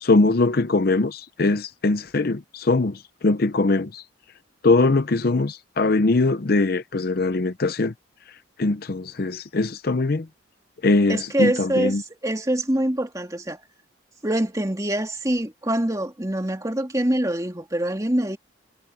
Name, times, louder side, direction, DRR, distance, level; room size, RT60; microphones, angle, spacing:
voice 1, 0.0-4.0 4.6-7.9 8.6-10.3 10.8-12.0, left 3 dB, 50° left, 0.6 m, -21 dB
voice 2, 11.1-13.6 14.2-18.4, right 1 dB, 15° right, 2.4 m, -24 dB
head